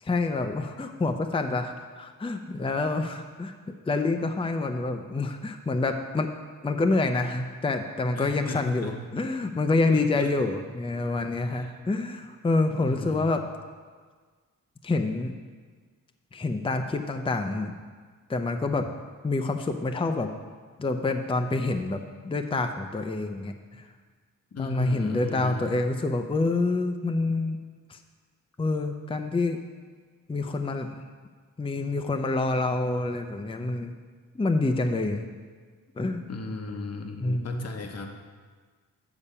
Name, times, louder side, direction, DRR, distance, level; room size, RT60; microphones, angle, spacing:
voice 1, 0.0-3.5 3.8-6.3 6.6-13.4 14.8-15.3 16.3-17.7 18.3-18.9 19.2-20.3 20.8-23.9 24.6-27.6 27.9-28.0 28.6-29.6 30.3-31.0 31.6-33.9 34.3-35.3 36.0-36.3 37.2-37.7, left 3 dB, 15° left, 6 dB, 0.5 m, -27 dB
voice 2, 8.1-9.2 10.1-10.3 12.7-13.2 24.5-25.7 36.3-38.1, left 3 dB, 45° left, 4 dB, 1.0 m, -36 dB
7.0 x 6.9 x 5.5 m, 1.5 s
cardioid pair, 75°, 34 cm